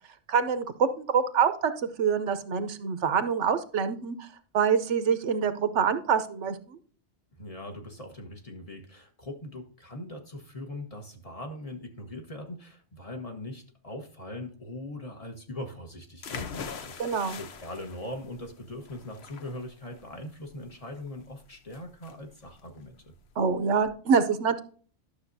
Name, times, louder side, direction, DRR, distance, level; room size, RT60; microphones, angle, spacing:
voice 1, 0.3-1.7 2.0-4.3 4.5-6.8 17.0-17.4 23.4-24.6, right 6 dB, 80° right, 11 dB, 1.1 m, -25 dB
voice 2, 7.4-23.1, left 1 dB, 30° left, 3 dB, 1.3 m, -41 dB
sound 1, 16.2-23.9, left 6 dB, 65° left, 1.0 m, -43 dB
12.0 x 6.6 x 2.7 m, 0.43 s
omnidirectional pair, 1.2 m